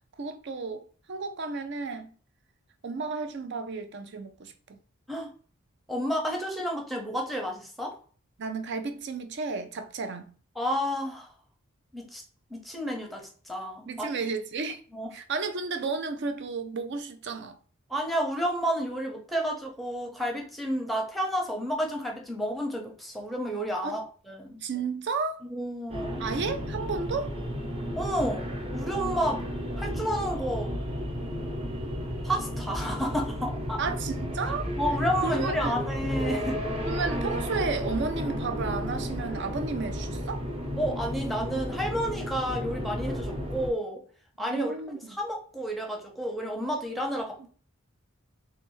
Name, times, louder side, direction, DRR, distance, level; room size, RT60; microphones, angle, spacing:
voice 1, 0.2-0.8 1.1-2.1 2.8-4.8 8.4-10.3 13.9-14.8 15.1-17.6 23.8-24.0 24.6-25.4 26.2-27.3 33.8-34.7 35.2-35.8 36.8-40.5 44.5-45.2, right 4 dB, 55° right, 0.5 m, -32 dB
voice 2, 5.9-8.0 10.6-11.3 11.9-12.2 12.5-14.1 14.9-15.1 17.9-24.6 25.4-26.2 28.0-29.5 29.8-30.8 32.2-33.8 34.8-36.6 40.8-44.0 44.4-44.7 45.2-47.5, equal, ahead, 0.8 m, -31 dB
sound 1, 25.9-43.7, equal, 30° right, 0.8 m, -33 dB
3.4 x 3.3 x 3.1 m
head